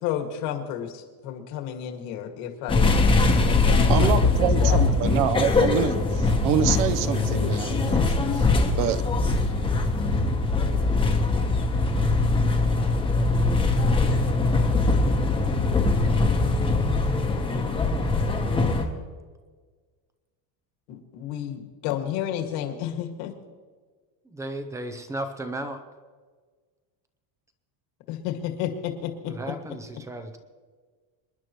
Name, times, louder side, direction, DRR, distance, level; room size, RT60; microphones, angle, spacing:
voice 1, 0.0-2.9 3.4-4.8 20.9-23.3 28.1-29.3, left 10 dB, 70° left, 3 dB, 2.1 m, -31 dB
sound 1, 2.7-18.8, left 3 dB, 10° left, 1.0 m, -22 dB
voice 2, 3.9-8.0 8.3-8.5 8.8-9.0, right 9 dB, 60° right, 11 dB, 0.9 m, -26 dB
voice 3, 24.3-25.8 29.3-30.4, right 1 dB, 5° right, 8 dB, 0.5 m, -34 dB
26.5 x 11.0 x 3.1 m, 1.5 s
cardioid pair, 170°, 50 cm